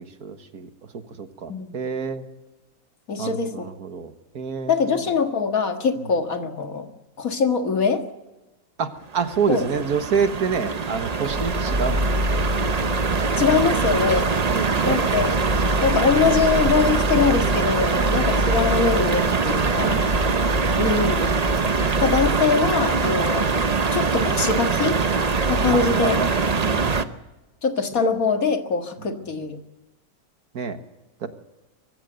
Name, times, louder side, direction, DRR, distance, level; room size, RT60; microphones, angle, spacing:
voice 1, 0.0-2.2 3.2-5.0 8.8-13.0 13.6-13.8 14.5-15.0 17.9-18.2 19.7-20.1 20.4-20.5 22.3-22.4 25.7-27.1 29.0-29.3 30.5-30.8 31.2-31.3, right 6 dB, 85° right, 8 dB, 2.0 m, -29 dB
voice 2, 3.1-3.5 4.7-6.9 7.2-8.0 9.5-9.8 13.4-14.3 14.8-15.4 15.8-20.0 20.8-21.3 22.0-23.6 23.9-25.0 25.5-26.2 27.6-29.6, left 5 dB, 70° left, 5 dB, 2.2 m, -23 dB
sound 1, 9.1-27.0, right 4 dB, 35° right, 0.8 m, -23 dB
sound 2, 11.3-22.4, left 1 dB, 15° right, 2.0 m, -28 dB
23.5 x 14.5 x 8.0 m, 1.1 s
omnidirectional pair, 1.6 m